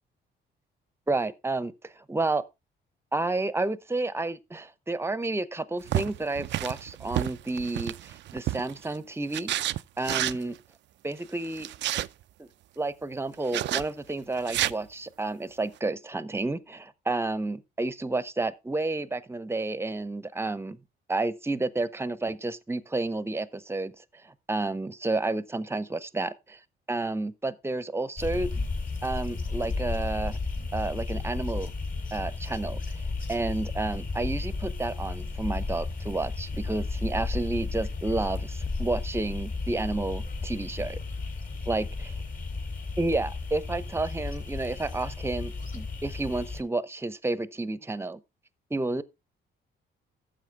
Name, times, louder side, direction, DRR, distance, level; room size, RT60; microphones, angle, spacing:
voice 1, 1.1-2.4 3.1-10.5 11.0-12.0 12.4-12.5 12.8-20.8 21.1-26.6 26.9-28.7 29.0-30.4 30.7-31.7 32.1-33.0 33.3-41.0 41.7-42.1 43.0-48.2 48.7-49.0, right 2 dB, 10° right, 0.8 m, -31 dB
sound 1, 5.9-8.9 9.3-10.4 11.4-12.1 13.5-13.9 14.4-14.7, right 14 dB, 65° right, 0.4 m, -30 dB
sound 2, 28.2-46.6, left 3 dB, 45° left, 3.2 m, -33 dB
12.0 x 7.5 x 3.4 m
cardioid pair, 90°, 20 cm